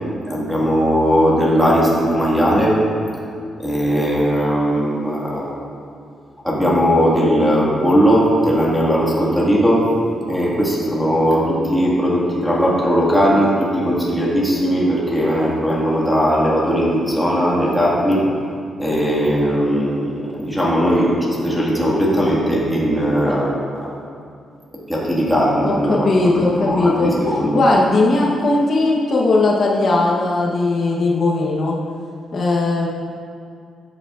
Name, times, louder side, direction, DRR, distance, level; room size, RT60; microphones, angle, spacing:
voice 1, 0.3-2.8 3.6-5.5 6.4-9.9 10.3-18.3 18.8-23.9 24.9-27.6, equal, ahead, -6 dB, 1.7 m, -18 dB
voice 2, 25.6-27.1 27.5-31.8 32.3-32.9, left 2 dB, 45° left, -3 dB, 0.9 m, -18 dB
13.5 x 8.4 x 2.4 m, 2.4 s
cardioid pair, 155°, 0 cm